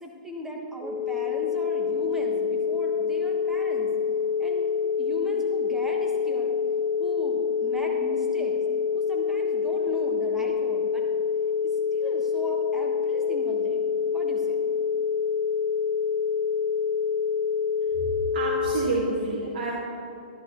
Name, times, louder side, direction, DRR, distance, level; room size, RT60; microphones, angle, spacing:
voice 1, 0.0-3.9 4.4-4.7 5.0-6.6 7.0-8.5 8.9-11.0 11.6-13.8 14.1-14.6, left 1 dB, 5° right, 0 dB, 1.4 m, -37 dB
sound 1, 0.8-18.8, left 6 dB, 25° right, 2.7 m, -26 dB
voice 2, 18.3-19.7, right 2 dB, 80° right, -5 dB, 2.0 m, -28 dB
13.5 x 11.0 x 3.1 m, 2.8 s
hypercardioid pair, 145°, 5 cm